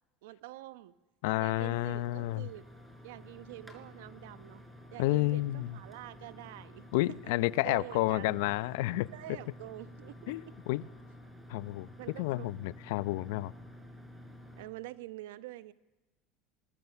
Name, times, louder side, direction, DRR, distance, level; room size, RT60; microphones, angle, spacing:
voice 1, 0.2-0.9 1.4-2.7 3.0-4.6 4.9-6.9 7.6-8.4 9.1-10.3 12.0-12.5 14.6-15.7, right 16 dB, 80° right, 13 dB, 1.0 m, -46 dB
voice 2, 1.2-2.5 5.0-5.8 6.9-9.1 10.3-10.8 11.5-13.5, left 18 dB, 75° left, 18 dB, 0.7 m, -30 dB
sound 1, 1.4-14.7, left 1 dB, 5° right, 5.4 m, -51 dB
24.5 x 20.5 x 7.1 m, 1.1 s
hypercardioid pair, 85°, 0 cm